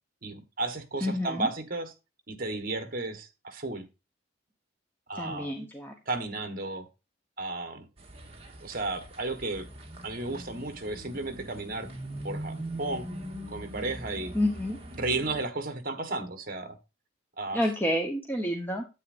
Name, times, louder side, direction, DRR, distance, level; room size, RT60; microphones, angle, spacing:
voice 1, 0.2-1.9 2.3-3.8 5.1-5.5 6.1-6.9 7.4-7.8 8.6-9.7 10.0-11.9 12.2-13.1 13.5-14.4 14.9-16.8 17.4-17.7, right 2 dB, 50° right, 9 dB, 1.4 m, -33 dB
voice 2, 1.0-1.5 5.1-5.9 14.3-14.8 17.5-18.8, left 1 dB, 10° left, 2 dB, 1.0 m, -29 dB
sound 1, 8.0-15.4, right 1 dB, 30° right, 1.8 m, -42 dB
9.7 x 8.4 x 2.6 m, 0.27 s
head